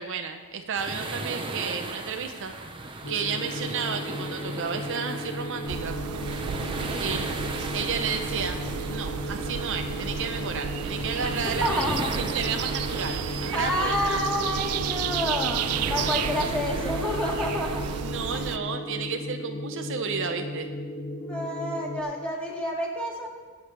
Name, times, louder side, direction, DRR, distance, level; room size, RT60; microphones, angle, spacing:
voice 1, 0.0-2.5 3.1-6.0 7.0-7.3 7.7-8.6 8.9-11.7 12.3-14.2 18.0-20.7, right 6 dB, 55° right, 6 dB, 0.7 m, -32 dB
sound 1, 0.8-18.0, right 2 dB, 20° right, 0.8 m, -37 dB
sound 2, 3.0-22.0, left 1 dB, 65° left, 1.6 m, -35 dB
sound 3, 5.7-18.6, right 9 dB, 90° right, 0.4 m, -33 dB
voice 2, 11.6-12.1 13.5-17.8 18.3-18.7 21.1-23.3, equal, 5° left, -3 dB, 2.2 m, -29 dB
23.5 x 8.2 x 3.3 m, 1.5 s
head